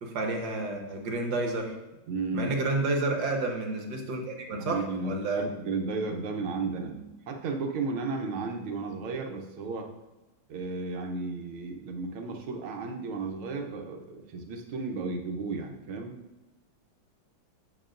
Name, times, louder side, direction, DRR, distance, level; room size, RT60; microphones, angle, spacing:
voice 1, 0.0-1.8 2.3-5.4, right 2 dB, 70° right, 2 dB, 1.7 m, -30 dB
voice 2, 2.1-2.5 4.6-9.9 10.5-16.2, right 3 dB, 85° right, 3 dB, 1.7 m, -34 dB
9.0 x 7.2 x 2.5 m, 1.0 s
omnidirectional pair, 2.2 m